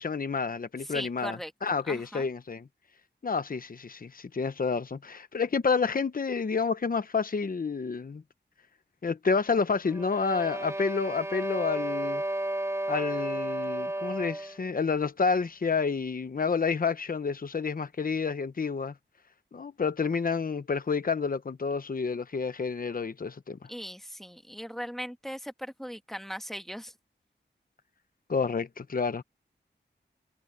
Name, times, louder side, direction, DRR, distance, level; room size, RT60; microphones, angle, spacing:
voice 1, 0.0-2.7 3.2-8.2 9.0-12.2 12.9-18.9 19.5-23.6 28.3-29.2, left 5 dB, 50° left, 0.9 m, -29 dB
voice 2, 0.8-1.5 1.8-2.3 23.7-26.9, equal, ahead, 1.6 m, -39 dB
sound 1, 9.8-14.6, right 1 dB, 15° right, 2.4 m, -33 dB
wide cardioid pair, 85°, 19 cm